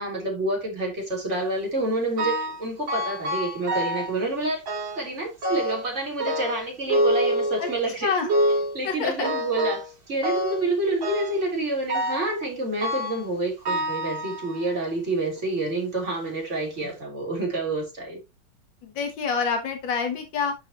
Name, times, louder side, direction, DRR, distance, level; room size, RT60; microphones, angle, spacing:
voice 1, 0.0-4.6 4.9-8.1 8.7-18.2, right 2 dB, 35° right, 3.9 m, -28 dB
sound 1, 2.2-2.6 2.9-4.2 4.7-5.1 5.4-5.9 6.2-7.9 8.3-8.8 9.2-9.9 10.2-10.7 11.0-11.4 11.9-12.3 12.8-13.3 13.7-14.7 15.4-15.5 16.3-16.4 16.8-16.9, equal, 85° right, 3.7 m, -27 dB
voice 2, 8.8-9.3 18.8-20.6, left 5 dB, 80° left, 2.0 m, -27 dB
10.5 x 5.8 x 3.0 m
omnidirectional pair, 2.0 m